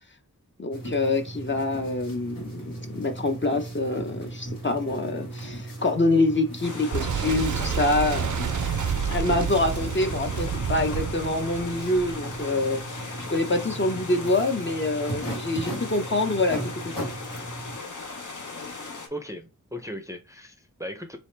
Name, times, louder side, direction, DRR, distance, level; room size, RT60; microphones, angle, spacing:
voice 1, 0.6-8.4 9.1-13.0 13.3-17.1, left 2 dB, 35° left, 0.7 m, -26 dB
sound 1, 0.7-17.8, right 2 dB, 80° left, 1.7 m, -37 dB
sound 2, 6.6-19.1, left 3 dB, 60° left, 0.9 m, -38 dB
Boom, 6.9-12.5, right 7 dB, 60° right, 0.5 m, -29 dB
voice 2, 19.1-21.2, equal, 10° right, 0.5 m, -37 dB
3.9 x 2.8 x 3.2 m
wide cardioid pair, 55°, 33 cm